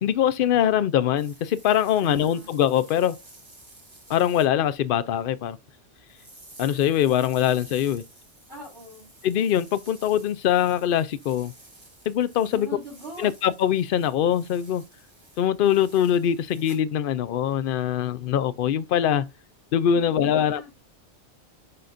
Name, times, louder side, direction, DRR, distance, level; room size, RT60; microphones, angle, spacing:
voice 1, 0.0-3.2 4.1-5.6 6.6-8.0 9.2-11.5 12.1-12.7 13.2-14.8 15.4-19.3 19.7-20.6, left 10 dB, 60° left, 0.6 m, -23 dB
sound 1, 1.2-4.5 6.1-16.8, right 2 dB, 25° right, 1.5 m, -51 dB
voice 2, 2.0-2.5 8.5-9.1 12.5-13.3 19.9-20.7, right 1 dB, 55° right, 4.6 m, -41 dB
11.0 x 4.0 x 2.5 m
omnidirectional pair, 1.2 m